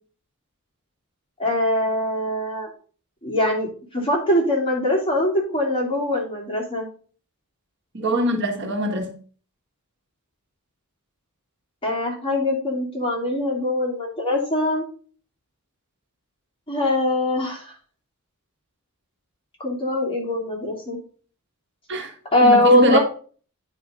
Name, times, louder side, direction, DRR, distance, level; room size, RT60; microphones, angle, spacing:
voice 1, 1.4-2.7 3.2-6.9 11.8-14.8 16.7-17.7 19.6-21.0 22.3-23.0, left 1 dB, 25° left, 3.1 m, -22 dB
voice 2, 7.9-9.2 21.9-22.1 22.4-23.0, right 1 dB, 55° right, 1.4 m, -23 dB
9.4 x 4.7 x 5.2 m
head